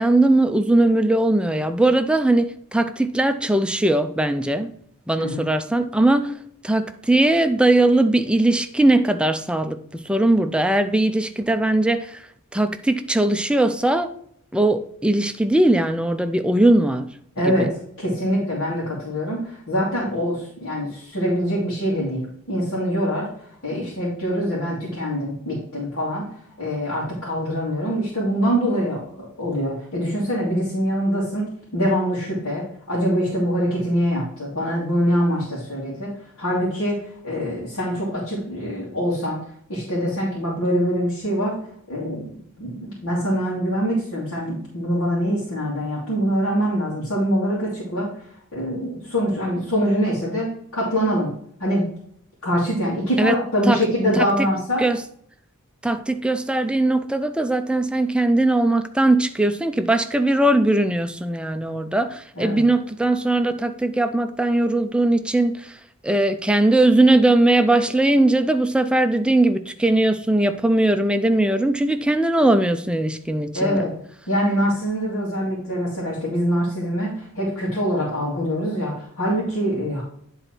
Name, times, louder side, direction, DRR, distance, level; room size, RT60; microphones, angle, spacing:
voice 1, 0.0-4.7 5.1-6.3 6.6-12.2 12.5-14.1 14.5-17.1 17.4-17.7 53.2-53.4 53.7-53.8 54.2-54.3 54.8-55.0 55.8-65.8 66.0-73.9, right 2 dB, 5° right, 0.4 m, -19 dB
voice 2, 17.4-17.7 18.0-23.3 23.6-26.2 26.6-31.5 31.7-36.1 36.4-37.0 37.2-39.4 39.7-41.5 41.9-42.3 42.6-48.2 48.5-51.3 51.6-51.9 52.4-54.8 62.4-62.6 73.5-73.9 74.3-80.0, equal, 70° left, 2.5 m, -24 dB
9.5 x 4.0 x 4.4 m
head